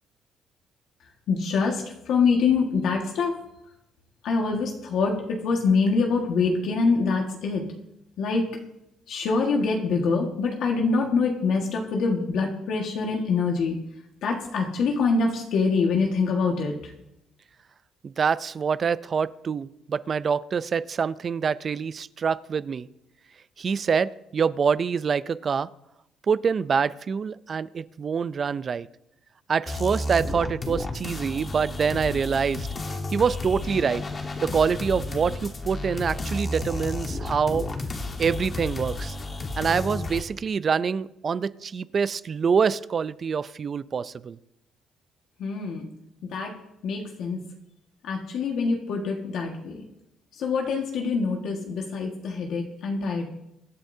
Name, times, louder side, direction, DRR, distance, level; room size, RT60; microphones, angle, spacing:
voice 1, 1.3-3.3 4.2-7.6 8.2-8.5 9.1-13.7 14.2-16.7 45.4-45.9 46.3-46.5 46.8-47.4 48.0-49.8 50.4-53.3, left 4 dB, 70° left, 1 dB, 1.6 m, -25 dB
voice 2, 18.0-22.9 23.6-25.7 26.3-28.9 29.5-32.7 33.1-34.0 34.4-37.7 38.2-39.2 39.6-44.4, right 6 dB, 40° right, 16 dB, 0.4 m, -25 dB
sound 1, 29.7-40.2, left 2 dB, 30° left, 1.4 m, -32 dB
23.0 x 9.1 x 2.7 m, 0.85 s
cardioid pair, 110°, 0 cm